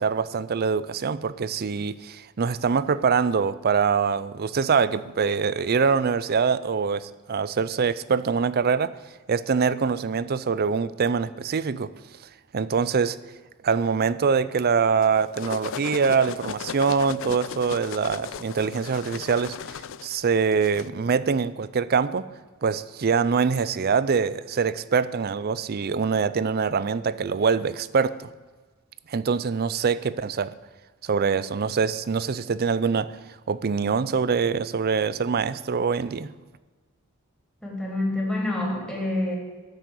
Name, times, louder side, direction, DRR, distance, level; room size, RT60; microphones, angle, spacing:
voice 1, 0.0-8.9 9.3-11.9 12.5-13.2 13.6-19.6 20.0-22.2 22.6-28.3 29.1-30.5 31.0-33.1 33.5-36.3, right 5 dB, 50° right, 16 dB, 0.5 m, -24 dB
sound 1, 15.0-20.9, left 7 dB, 65° left, 0.5 m, -36 dB
voice 2, 37.6-39.3, left 1 dB, 5° left, -3 dB, 3.5 m, -27 dB
13.5 x 6.5 x 8.3 m, 1.3 s
head